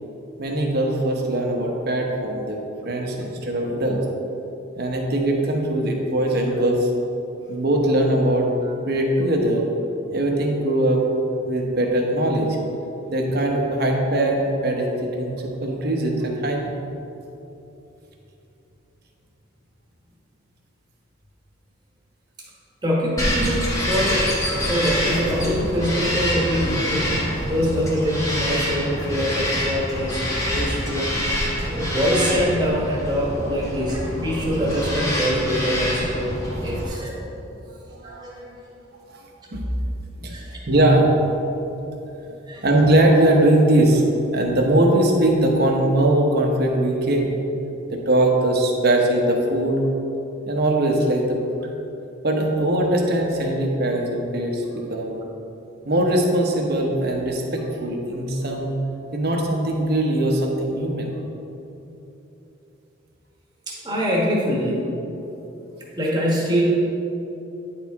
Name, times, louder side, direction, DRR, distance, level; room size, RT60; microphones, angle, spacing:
voice 1, 0.4-4.0 4.8-6.9 7.5-8.5 8.9-9.7 10.1-11.0 11.5-12.6 13.1-16.7 30.5-30.6 31.6-31.8 36.2-36.3 36.5-36.8 38.0-38.2 39.1-39.2 39.5-39.6 40.2-40.3 40.7-41.1 42.2-42.3 42.6-44.0 44.3-47.3 47.9-49.8 50.5-51.4 52.2-55.2 55.8-58.7 59.1-61.1, right 1 dB, 50° right, 1 dB, 0.9 m, -21 dB
voice 2, 22.8-31.1 31.7-36.3 36.6-37.3 38.0-38.4 40.2-40.6 42.4-42.6 63.7-64.9 66.0-66.7, equal, 20° right, -3 dB, 1.1 m, -24 dB
Bird vocalization bird call bird song, 23.2-36.9, equal, 15° left, 1.1 m, -26 dB
9.5 x 4.5 x 3.5 m, 3.0 s
head